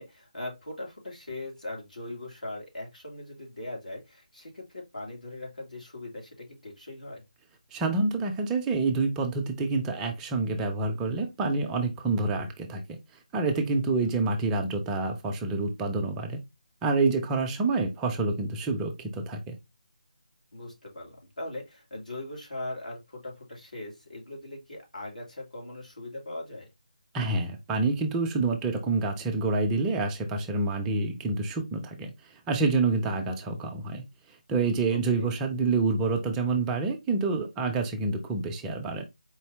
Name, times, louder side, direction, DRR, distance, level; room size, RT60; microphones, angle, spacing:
voice 1, 0.0-7.2 13.9-14.1 20.5-26.7 34.9-35.4, left 1 dB, 90° left, 2.3 m, -40 dB
voice 2, 7.7-12.8 13.3-16.4 16.8-19.6 27.1-34.0 34.5-39.0, right 3 dB, 10° right, 0.4 m, -27 dB
4.4 x 2.7 x 3.3 m
figure-of-eight pair, 155°, 4 cm